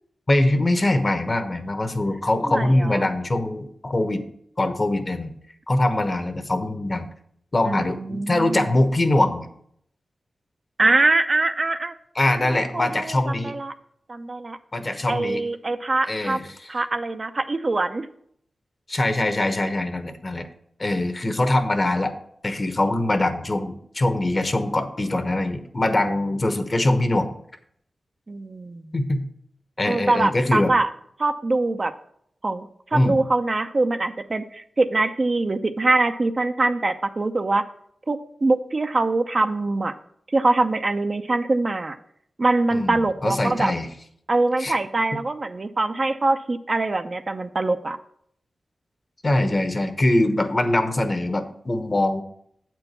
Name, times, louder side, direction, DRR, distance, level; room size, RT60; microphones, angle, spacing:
voice 1, 0.3-4.2 4.6-5.3 5.7-7.1 7.5-9.5 12.1-13.5 14.7-15.4 16.1-16.7 18.9-20.5 20.8-22.2 22.4-27.3 28.9-29.3 29.8-30.7 32.9-33.2 42.7-43.9 44.6-44.7 49.2-52.2, left 1 dB, 40° left, 9 dB, 1.1 m, -23 dB
voice 2, 2.4-3.0 7.7-8.8 10.8-11.9 12.3-13.7 14.1-14.6 15.1-16.4 16.7-18.1 28.3-28.9 29.9-30.9 31.2-31.9 32.4-37.7 38.1-39.9 40.3-42.0 42.4-43.7 44.3-48.0, right 2 dB, 45° right, 8 dB, 0.6 m, -23 dB
8.0 x 4.6 x 6.7 m, 0.68 s
cardioid pair, 50°, 0 cm